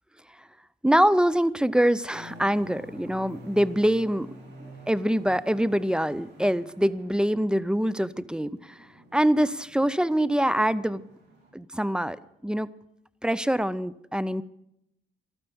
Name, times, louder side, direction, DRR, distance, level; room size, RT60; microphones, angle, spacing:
voice 1, 0.8-4.3 4.9-8.8 9.1-11.0 11.5-12.2 12.4-12.7 13.2-14.4, equal, 5° right, 19 dB, 0.5 m, -24 dB
sound 1, 2.1-11.5, right 1 dB, 60° right, 5.7 m, -49 dB
13.0 x 12.5 x 7.0 m, 0.81 s
cardioid pair, 90°, 20 cm